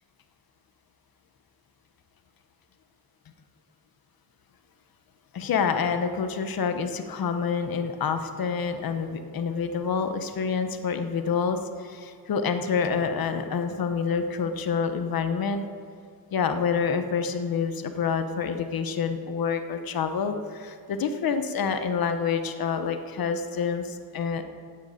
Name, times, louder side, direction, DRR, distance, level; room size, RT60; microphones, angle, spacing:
voice 1, 5.3-15.6 16.3-24.4, left 6 dB, 80° left, 8 dB, 1.0 m, -27 dB
9.0 x 8.6 x 8.0 m, 2.2 s
wide cardioid pair, 130°, 35 cm